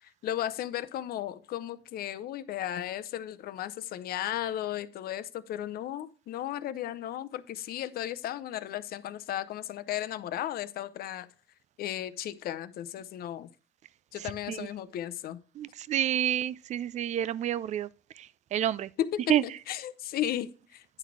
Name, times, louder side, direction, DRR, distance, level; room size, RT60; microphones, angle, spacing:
voice 1, 0.0-11.3 11.8-13.5 14.1-15.4 19.0-20.8, left 12 dB, 65° left, 0.6 m, -35 dB
voice 2, 14.2-14.7 15.6-17.9 18.2-18.9 19.3-19.4, right 11 dB, 45° right, 0.4 m, -29 dB
9.9 x 4.0 x 4.6 m
cardioid pair, 110°, 17 cm